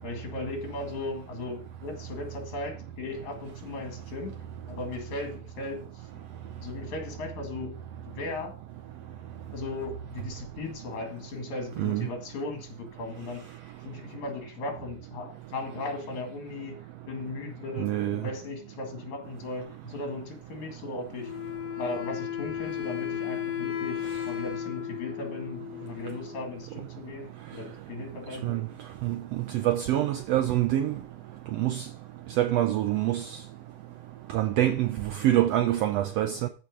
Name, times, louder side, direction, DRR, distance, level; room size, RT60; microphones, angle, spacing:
voice 1, 0.0-4.4 4.7-5.9 6.6-7.8 8.1-8.5 9.5-13.5 13.8-16.8 17.1-21.3 21.8-28.6, left 2 dB, 70° left, 3.6 m, -37 dB
voice 2, 17.8-18.2 28.4-28.6 29.0-30.9 31.6-31.8 32.4-33.2 34.3-36.5, right 13 dB, 80° right, 1.5 m, -25 dB
Wind instrument woodwind instrument, 21.2-26.7, left 11 dB, 55° left, 3.7 m, -35 dB
13.5 x 5.2 x 5.0 m
omnidirectional pair, 3.5 m